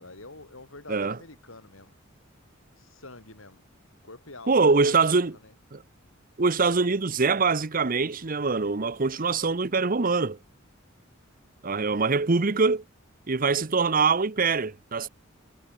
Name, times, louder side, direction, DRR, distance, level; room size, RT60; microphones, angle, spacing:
voice 1, 0.0-1.9 2.8-3.6 4.0-5.5, left 2 dB, 90° left, 7.4 m, -46 dB
voice 2, 4.5-5.3 5.7-5.8 6.4-10.4 11.6-12.8 13.3-15.1, right 4 dB, 45° right, 0.9 m, -23 dB
head